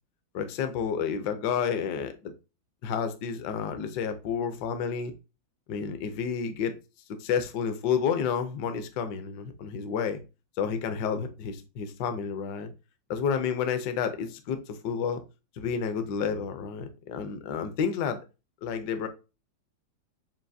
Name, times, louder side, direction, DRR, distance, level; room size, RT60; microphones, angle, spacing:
voice 1, 0.3-2.3 2.8-5.1 5.7-6.7 7.2-10.2 10.6-12.7 13.1-15.2 15.6-18.2 18.6-19.1, left 7 dB, 70° left, 1.2 m, -30 dB
7.4 x 2.6 x 2.6 m
omnidirectional pair, 2.0 m